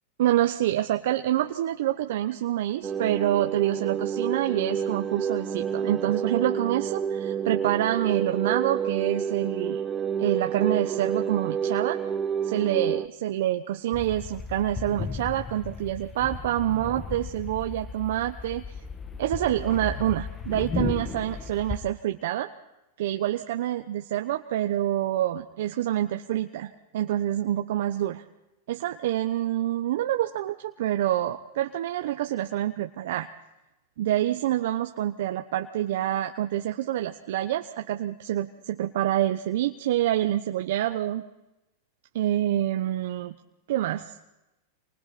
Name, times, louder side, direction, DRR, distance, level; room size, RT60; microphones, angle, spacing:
voice 1, 0.2-9.8 10.2-12.0 12.4-18.6 19.2-22.5 23.0-28.2 28.7-33.3 34.0-41.2 42.1-43.3 43.7-44.1, right 13 dB, 70° right, 5 dB, 1.0 m, -27 dB
sound 1, 2.8-13.1, right 7 dB, 20° right, 0.8 m, -29 dB
sound 2, 13.9-21.8, left 5 dB, 20° left, 1.4 m, -35 dB
28.0 x 24.0 x 4.3 m, 0.98 s
hypercardioid pair, 125°, 0 cm